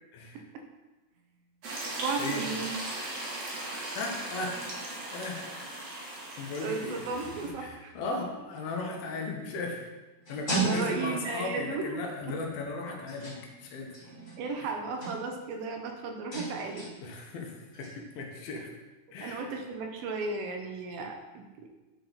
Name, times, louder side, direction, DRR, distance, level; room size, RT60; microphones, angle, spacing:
voice 1, 0.1-0.4 2.2-2.4 3.9-4.6 5.1-5.8 6.4-7.0 7.6-9.9 10.3-14.0 14.6-14.7 17.0-18.7 19.1-19.5, left 3 dB, 85° left, 1 dB, 2.9 m, -36 dB
sound 1, 1.2-8.4 9.5-11.6 12.1-12.6 13.1-15.6 16.0-18.4, right 3 dB, 30° left, 1.5 m, -39 dB
sound 2, 1.6-7.5, right 1 dB, 60° right, 2.1 m, -38 dB
voice 2, 2.0-2.7 6.6-7.9 10.5-12.0 14.4-16.9 19.2-21.7, right 4 dB, 80° right, 3 dB, 2.6 m, -34 dB
9.5 x 4.6 x 4.0 m, 1.2 s
omnidirectional pair, 4.1 m